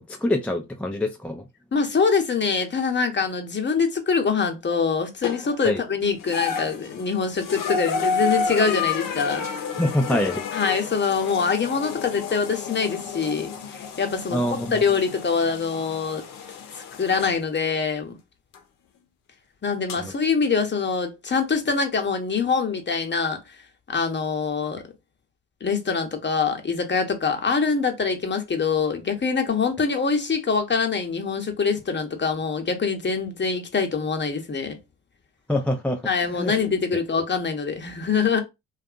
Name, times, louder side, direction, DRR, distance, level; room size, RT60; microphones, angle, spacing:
voice 1, 0.0-1.4 5.6-5.8 9.8-10.4 14.3-14.8 35.5-36.0 36.3-36.5, left 1 dB, 5° left, 0.4 m, -25 dB
voice 2, 1.7-9.5 10.5-16.2 16.7-18.1 19.6-23.6 23.9-24.8 25.6-34.8 36.0-38.4, left 5 dB, 30° left, 0.9 m, -24 dB
sound 1, 5.2-5.7 6.2-17.4 18.5-18.6 19.9-20.0, left 6 dB, 60° left, 0.7 m, -30 dB
2.5 x 2.4 x 2.5 m
hypercardioid pair, 50°, 37 cm